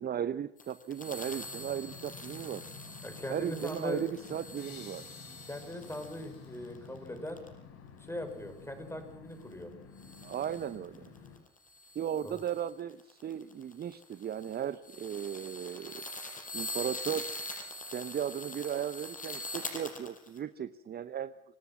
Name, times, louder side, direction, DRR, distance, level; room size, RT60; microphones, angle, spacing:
voice 1, 0.0-2.6 3.3-5.0 10.2-11.1 11.9-16.0 16.5-17.3 17.9-21.3, right 9 dB, 30° right, 13 dB, 0.9 m, -36 dB
sound 1, 0.6-7.5 10.0-20.4, left 2 dB, 25° left, 7.0 m, -43 dB
sound 2, 1.1-11.4, left 6 dB, 50° left, 6.9 m, -51 dB
voice 2, 3.0-4.0 5.5-7.4 8.0-9.7 12.2-12.4, left 1 dB, 10° left, 7 dB, 6.4 m, -40 dB
sound 3, 4.6-7.6, left 7 dB, 75° left, 5.2 m, -57 dB
25.5 x 18.0 x 6.1 m, 0.76 s
hypercardioid pair, 65°, 31 cm